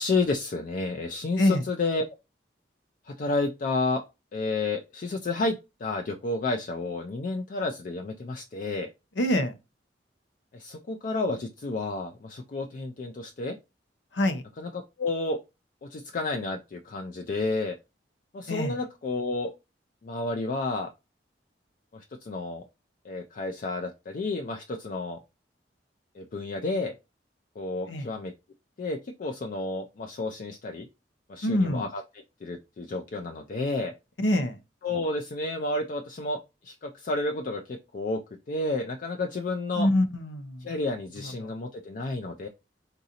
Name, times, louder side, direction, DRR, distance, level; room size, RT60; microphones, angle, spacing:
voice 1, 0.0-2.0 3.1-4.0 4.3-8.9 10.5-13.6 14.6-15.4 15.8-17.8 18.3-19.5 20.0-20.9 21.9-22.6 23.0-25.2 26.2-26.9 27.6-28.3 28.8-30.9 31.3-32.0 32.4-33.9 34.8-36.4 36.6-38.2 38.5-39.9 40.6-42.5, left 3 dB, 45° left, 0.4 m, -31 dB
voice 2, 9.2-9.5 14.2-14.4 18.5-18.8 27.9-28.1 31.4-31.8 34.2-34.5 39.8-40.6 41.4-41.5, left 1 dB, 90° left, 0.7 m, -25 dB
3.9 x 2.6 x 2.7 m
head